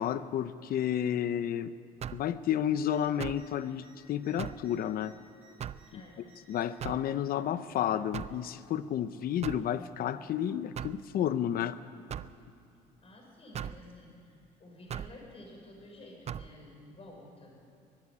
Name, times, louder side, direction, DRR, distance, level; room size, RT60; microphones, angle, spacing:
voice 1, 0.0-1.7 2.1-5.1 5.9-6.0 6.5-11.7, left 10 dB, 60° left, 13 dB, 0.8 m, -31 dB
sound 1, 2.0-2.3 3.2-3.5 4.4-4.7 5.6-5.9 6.8-7.1 8.1-8.4 9.4-9.7 10.8-11.0 12.1-12.4 13.5-13.8 14.9-15.2 16.3-16.5, right 9 dB, 40° right, 0.5 m, -39 dB
sound 2, 2.8-3.0 3.3-3.5 3.8-5.9 6.2-6.8 7.8-8.5 9.5-9.6, right 3 dB, 10° right, 6.5 m, -61 dB
voice 2, 5.9-6.2 13.0-17.5, left 1 dB, 35° left, 0 dB, 6.4 m, -51 dB
22.5 x 12.0 x 9.8 m, 2.7 s
cardioid pair, 110°, 17 cm